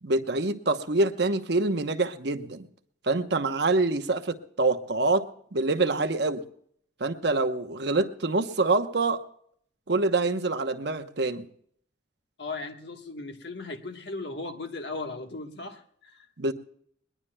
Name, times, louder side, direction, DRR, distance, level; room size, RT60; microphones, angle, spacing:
voice 1, 0.0-2.7 3.0-6.4 7.0-9.2 9.9-11.5 16.4-16.5, right 2 dB, 60° right, 0.9 m, -26 dB
voice 2, 12.4-16.3, left 3 dB, 65° left, 1.3 m, -37 dB
21.0 x 20.0 x 2.2 m
head